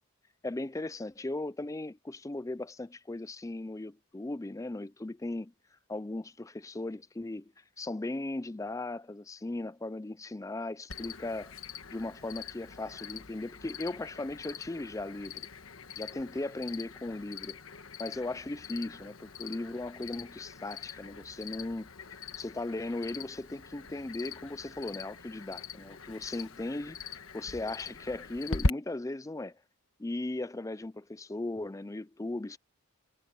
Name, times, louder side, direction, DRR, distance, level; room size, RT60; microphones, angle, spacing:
voice 1, 0.4-5.5 5.9-7.5 7.8-11.5 11.9-15.4 16.0-17.6 18.0-21.9 22.4-29.6 30.0-32.6, left 2 dB, 15° left, 0.4 m, -37 dB
Cricket, 10.9-28.7, left 3 dB, 65° left, 1.4 m, -41 dB
head